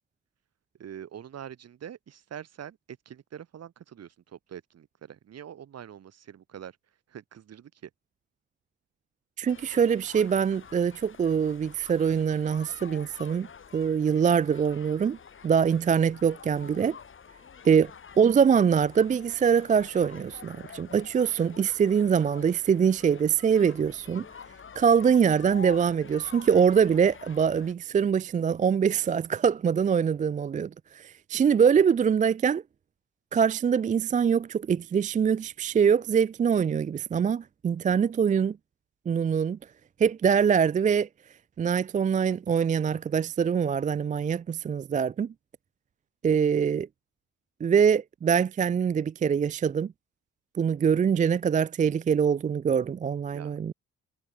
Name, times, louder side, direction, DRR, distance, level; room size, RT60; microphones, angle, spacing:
voice 1, 0.8-6.8 7.1-7.9 53.3-53.6, right 9 dB, 55° right, 2.1 m, -44 dB
voice 2, 9.4-13.5 13.7-15.2 15.4-17.0 17.6-17.9 18.2-24.2 24.8-30.7 30.9-32.6 33.3-38.6 39.1-39.6 40.0-41.1 41.6-45.3 46.2-46.9 47.6-49.9 50.6-53.7, right 7 dB, 25° right, 0.4 m, -24 dB
sound 1, 9.5-27.7, left 6 dB, 40° left, 3.2 m, -48 dB
cardioid pair, 90°, 30 cm